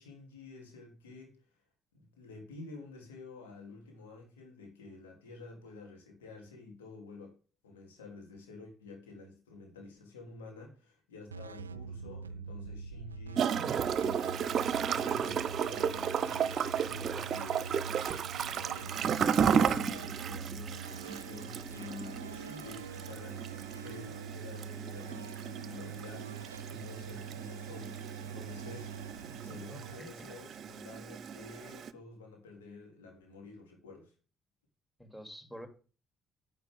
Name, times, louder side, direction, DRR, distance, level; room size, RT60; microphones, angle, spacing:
voice 1, 0.0-1.4 1.9-7.4 7.6-17.9 18.4-28.9 29.4-34.1, left 3 dB, 80° left, 3.3 m, -50 dB
sound 1, 11.3-30.9, right 6 dB, 85° right, 0.4 m, -44 dB
Gurgling / Toilet flush, 13.4-31.9, right 7 dB, 50° right, 0.7 m, -34 dB
voice 2, 29.5-30.3 35.0-35.7, equal, 5° left, 2.9 m, -48 dB
10.5 x 9.2 x 3.7 m
figure-of-eight pair, 45°, 0 cm